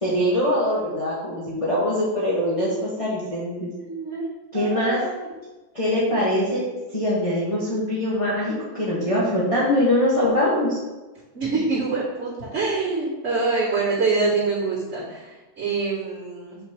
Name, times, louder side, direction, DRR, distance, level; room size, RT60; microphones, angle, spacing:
voice 1, 0.0-3.7 4.5-5.0 5.7-6.6 6.9-10.8, left 1 dB, 20° left, -8 dB, 1.3 m, -23 dB
voice 2, 3.6-4.3 4.5-5.3 11.3-16.6, right 4 dB, 45° right, -15 dB, 2.8 m, -25 dB
7.7 x 6.3 x 2.9 m, 1.2 s
omnidirectional pair, 1.8 m